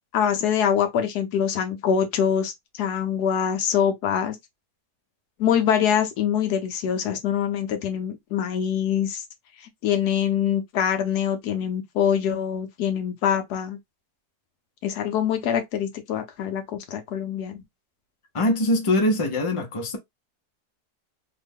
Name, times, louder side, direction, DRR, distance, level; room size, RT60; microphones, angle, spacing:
voice 1, 0.1-4.4 5.4-9.2 9.6-13.8 14.8-17.6, left 8 dB, 85° left, 1.3 m, -24 dB
voice 2, 18.3-20.0, left 1 dB, 55° left, 0.3 m, -22 dB
3.2 x 2.1 x 3.4 m
omnidirectional pair, 1.6 m